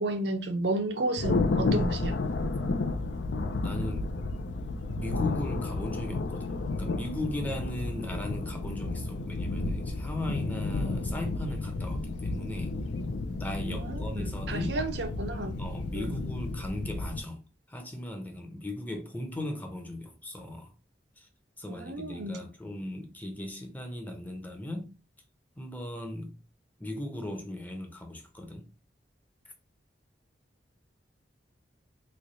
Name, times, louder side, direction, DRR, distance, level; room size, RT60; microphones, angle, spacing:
voice 1, 0.0-2.2 13.7-15.6 15.9-16.1 21.7-22.5, right 2 dB, 70° right, 0.6 m, -32 dB
Thunder, 1.2-17.2, left 3 dB, 85° left, 0.5 m, -32 dB
voice 2, 3.6-4.2 4.9-12.8 13.4-14.8 15.5-20.7 21.2-21.3 21.6-25.0 25.6-26.4 26.8-28.7, left 1 dB, 10° left, 0.6 m, -38 dB
3.2 x 2.3 x 3.9 m
head